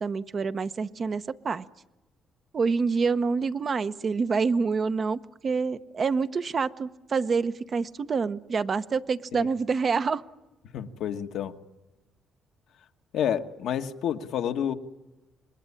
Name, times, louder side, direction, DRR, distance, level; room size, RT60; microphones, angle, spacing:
voice 1, 0.0-1.7 2.5-10.2, right 5 dB, 45° right, 0.9 m, -27 dB
voice 2, 10.7-11.6 13.1-14.7, left 9 dB, 80° left, 1.3 m, -29 dB
27.0 x 21.0 x 9.9 m
cardioid pair, 90°, 0 cm